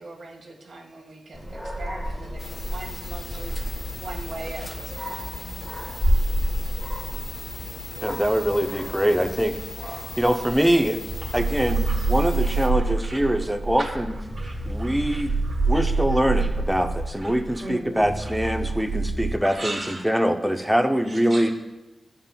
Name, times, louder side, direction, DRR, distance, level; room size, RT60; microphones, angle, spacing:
voice 1, 0.0-5.3, right 2 dB, 80° right, 0 dB, 1.5 m, -41 dB
Dog, 1.3-17.1, equal, 15° left, 1.2 m, -32 dB
sound 1, 2.4-12.7, left 3 dB, 50° left, 0.6 m, -38 dB
voice 2, 8.0-9.6 10.2-11.0 11.3-14.1 14.7-15.3 15.7-21.5, equal, 5° right, 5 dB, 0.5 m, -23 dB
sound 2, 11.1-19.3, right 3 dB, 50° right, 1.4 m, -26 dB
voice 3, 12.4-13.2 13.7-13.9 14.3-16.8 17.1-18.3 19.4-20.0 21.0-21.5, right 2 dB, 25° right, -5 dB, 1.6 m, -39 dB
12.5 x 5.6 x 2.2 m, 1.0 s
wide cardioid pair, 110°, 0 cm